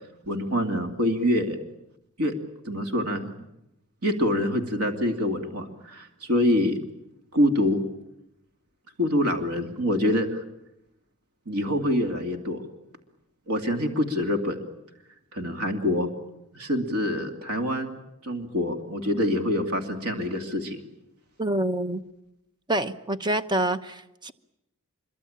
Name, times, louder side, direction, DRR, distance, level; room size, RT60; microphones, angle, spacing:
voice 1, 0.3-1.6 2.2-2.3 2.6-3.3 4.0-6.8 7.3-7.8 9.0-10.4 11.5-12.6 13.5-14.6 15.3-16.1 16.5-18.0 18.2-20.8, left 1 dB, 85° right, 5 dB, 2.6 m, -25 dB
voice 2, 21.4-22.0 22.7-24.3, right 1 dB, 20° right, 10 dB, 1.0 m, -27 dB
25.5 x 23.0 x 8.8 m, 0.87 s
head